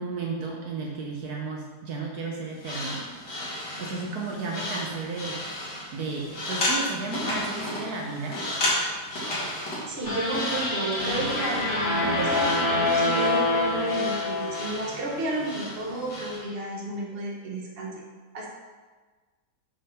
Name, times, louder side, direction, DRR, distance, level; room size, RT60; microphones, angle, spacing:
voice 1, 0.0-3.2 3.8-5.4 5.9-8.4, right 3 dB, 70° right, -1 dB, 1.3 m, -33 dB
sound 1, 2.5-16.4, left 1 dB, 80° left, 2.4 m, -33 dB
voice 2, 9.9-18.0 18.3-18.5, right 2 dB, 40° right, -3 dB, 1.4 m, -32 dB
sound 2, 10.0-15.3, left 2 dB, 55° left, 2.1 m, -26 dB
7.5 x 3.6 x 5.7 m, 1.4 s
omnidirectional pair, 1.8 m